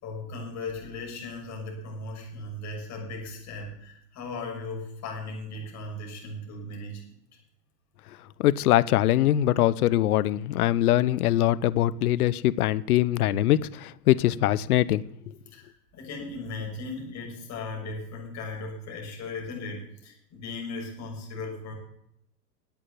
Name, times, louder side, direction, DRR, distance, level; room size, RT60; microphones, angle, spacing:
voice 1, 0.0-7.0 15.5-21.7, left 2 dB, 35° left, 6.6 m, -37 dB
voice 2, 8.4-15.3, left 13 dB, 65° left, 0.9 m, -23 dB
10.5 x 8.7 x 9.4 m
hypercardioid pair, 110°, 50 cm